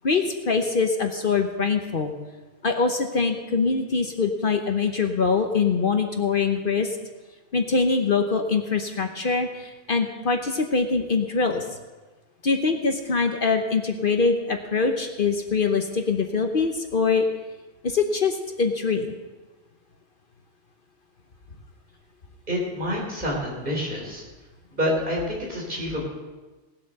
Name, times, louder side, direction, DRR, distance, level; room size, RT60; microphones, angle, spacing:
voice 1, 0.0-2.1 2.6-7.0 7.5-11.6 12.4-17.3 17.8-19.2, left 4 dB, 50° left, 5 dB, 1.1 m, -23 dB
voice 2, 22.5-24.2 24.7-26.0, equal, 45° right, -3 dB, 4.1 m, -27 dB
18.5 x 7.6 x 6.6 m, 1.2 s
omnidirectional pair, 1.2 m